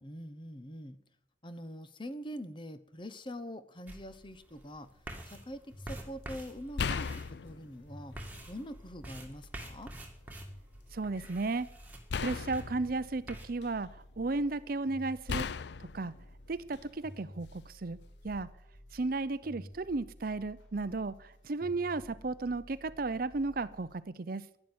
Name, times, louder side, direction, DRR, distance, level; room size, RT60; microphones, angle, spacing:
voice 1, 0.0-1.0 1.4-8.2 8.5-9.9, equal, 25° left, 12 dB, 0.9 m, -44 dB
sound 1, 3.9-13.5, right 1 dB, 10° right, 2.1 m, -48 dB
sound 2, 4.9-5.2 6.8-8.6 9.1-10.0 12.1-14.0 15.3-17.1 18.2-18.4, left 5 dB, 60° left, 0.5 m, -38 dB
sound 3, 5.7-24.0, equal, 85° left, 3.9 m, -53 dB
voice 2, 10.9-11.7 12.2-13.9 14.2-15.5 15.9-16.1 16.5-18.0 18.2-18.5 18.9-24.5, right 3 dB, 50° right, 16 dB, 0.6 m, -34 dB
11.5 x 10.5 x 9.6 m, 0.74 s
head